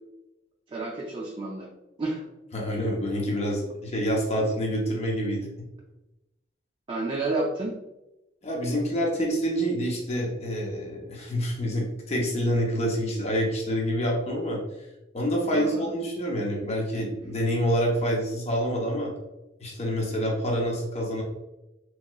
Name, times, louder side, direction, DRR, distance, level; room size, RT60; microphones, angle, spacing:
voice 1, 0.7-1.7 2.0-2.2 6.9-7.7 15.5-15.9, right 2 dB, 25° right, -3 dB, 0.4 m, -30 dB
voice 2, 2.5-5.5 8.4-14.6 15.1-19.1 19.6-21.2, equal, 35° left, -2 dB, 0.7 m, -27 dB
3.0 x 2.8 x 2.2 m, 0.97 s
head